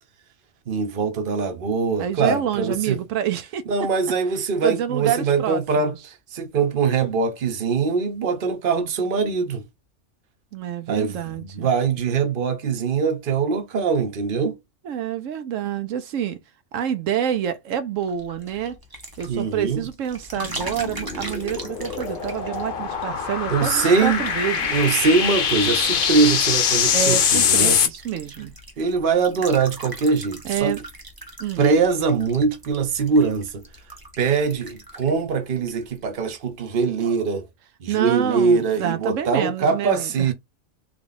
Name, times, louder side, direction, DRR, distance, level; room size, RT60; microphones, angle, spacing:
voice 1, 0.7-3.0 3.7-5.9 6.3-9.7 10.9-14.6 19.3-19.8 23.5-24.2 24.7-27.8 28.8-30.8 31.6-33.6 34.2-37.5 37.8-40.3, right 5 dB, 50° right, 0.9 m, -22 dB
voice 2, 2.0-3.6 4.6-6.0 10.5-11.7 14.8-16.4 16.7-18.8 19.2-24.8 26.9-28.5 30.4-30.8 31.4-31.7 37.9-40.3, right 9 dB, 90° right, 1.0 m, -27 dB
sound 1, 18.0-36.4 36.7-37.1, right 2 dB, 20° right, 0.7 m, -40 dB
sound 2, 20.4-27.9, left 7 dB, 55° left, 0.7 m, -23 dB
3.4 x 2.3 x 3.8 m
omnidirectional pair, 1.3 m